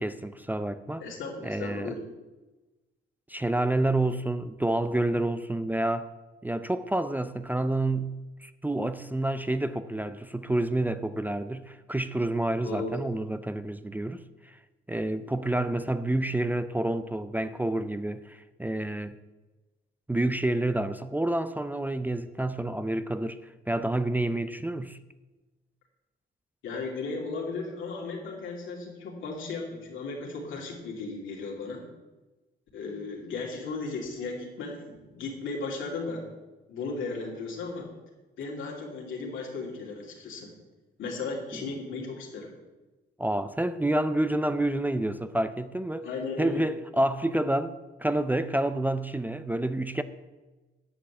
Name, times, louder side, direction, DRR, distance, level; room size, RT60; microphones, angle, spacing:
voice 1, 0.0-1.0 1.4-1.9 3.3-6.1 6.4-14.6 14.9-19.2 20.1-23.4 23.7-25.0 41.5-41.7 43.2-46.1 46.4-50.0, right 1 dB, 10° right, 0.5 m, -29 dB
voice 2, 1.0-2.0 12.6-12.9 26.6-31.8 32.7-36.2 36.7-37.9 38.4-40.5 41.0-42.5 46.0-46.6, left 3 dB, 80° left, 2.9 m, -35 dB
10.0 x 5.6 x 8.2 m
cardioid pair, 90°, 20 cm